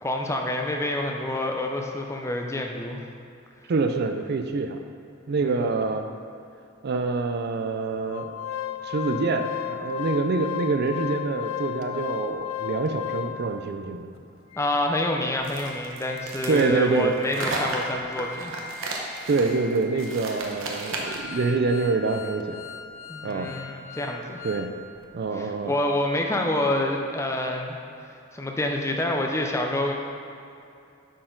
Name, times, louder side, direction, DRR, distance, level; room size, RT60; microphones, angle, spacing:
voice 1, 0.0-3.0 5.4-5.8 14.6-18.5 23.1-24.4 25.3-27.8 28.1-29.9, left 1 dB, 15° left, 2 dB, 0.5 m, -27 dB
voice 2, 3.7-4.8 5.3-6.1 6.8-8.3 8.8-14.1 16.5-17.2 19.3-22.6 23.2-23.5 24.4-24.7 25.1-25.7, right 3 dB, 50° right, 6 dB, 0.4 m, -26 dB
Organ, 8.1-13.6 14.2-14.3 14.5-14.7 15.1-24.7 25.0-25.2, left 11 dB, 75° left, 0.5 m, -36 dB
sound 1, 15.4-21.3, right 2 dB, 75° right, 1.0 m, -33 dB
10.0 x 4.3 x 3.8 m, 2.6 s
head